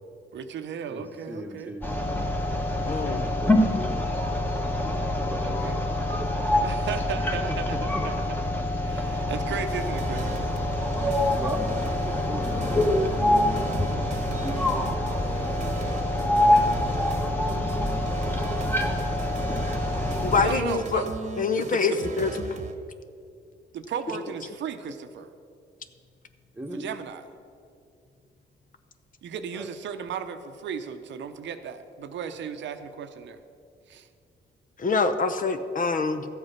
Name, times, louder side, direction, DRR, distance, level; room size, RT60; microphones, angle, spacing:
voice 1, 0.3-1.7 5.4-5.8 6.6-7.8 8.0-8.1 8.8-10.6 20.4-21.1 21.6-22.0 23.7-25.3 26.7-27.2 29.2-33.4 33.9-34.1, right 7 dB, 75° right, 8 dB, 0.7 m, -35 dB
voice 2, 0.9-1.9 2.7-4.1 4.6-5.6 6.0-6.3 7.5-7.8 11.4-16.0 16.9-17.5 26.5-26.9 29.5-29.7, equal, 10° right, 4 dB, 1.2 m, -40 dB
sound 1, 1.8-20.5, left 1 dB, 10° left, 1.4 m, -26 dB
voice 3, 2.9-3.2 20.2-21.0 21.4-22.6 24.1-24.2 34.8-36.3, left 4 dB, 45° left, 9 dB, 0.8 m, -25 dB
sound 2, 9.7-22.7, right 3 dB, 40° right, 1.1 m, -37 dB
13.0 x 7.9 x 5.8 m, 2.3 s
cardioid pair, 80°, 19 cm